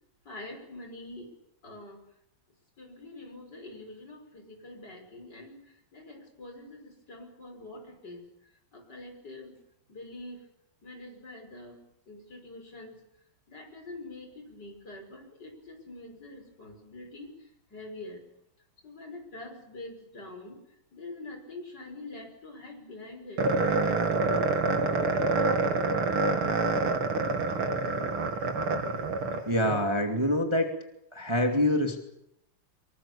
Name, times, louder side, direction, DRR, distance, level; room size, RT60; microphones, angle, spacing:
voice 1, 0.2-1.3 1.6-2.0 2.8-5.6 5.9-8.2 8.7-9.6 9.9-10.5 10.8-11.8 12.1-13.0 13.5-18.2 18.8-20.6 20.9-23.5, left 2 dB, 50° left, 4 dB, 6.5 m, -45 dB
sound 1, 23.4-29.8, right 3 dB, 75° right, 3.2 m, -27 dB
voice 2, 29.5-30.7 31.1-32.0, left 1 dB, 15° right, 3 dB, 2.2 m, -25 dB
25.0 x 24.0 x 7.0 m, 0.82 s
omnidirectional pair, 2.4 m